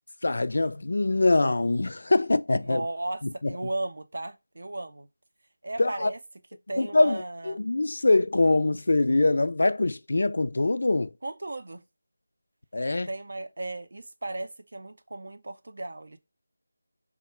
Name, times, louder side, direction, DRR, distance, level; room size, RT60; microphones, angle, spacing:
voice 1, 0.2-2.8 3.4-3.5 5.8-6.1 6.8-11.1 12.7-13.1, left 2 dB, 65° left, 0.3 m, -23 dB
voice 2, 2.6-5.1 5.6-6.2 6.7-7.6 11.2-11.8 13.1-16.2, right 2 dB, 65° right, 0.5 m, -35 dB
3.5 x 2.1 x 4.3 m
figure-of-eight pair, 170°, 0 cm